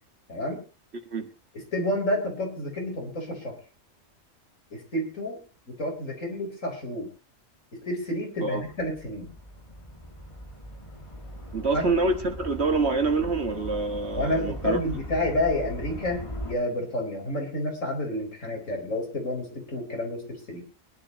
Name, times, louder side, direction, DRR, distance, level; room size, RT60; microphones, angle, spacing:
voice 1, 0.3-0.6 1.7-3.6 4.7-5.4 5.7-7.1 7.7-9.3 11.7-11.9 14.2-20.6, left 1 dB, 75° left, 1 dB, 4.4 m, -30 dB
sound 1, 8.6-16.5, equal, 25° left, 2.4 m, -39 dB
voice 2, 11.5-14.8, right 3 dB, 55° right, 6 dB, 2.0 m, -26 dB
23.5 x 11.0 x 2.9 m, 0.32 s
omnidirectional pair, 1.4 m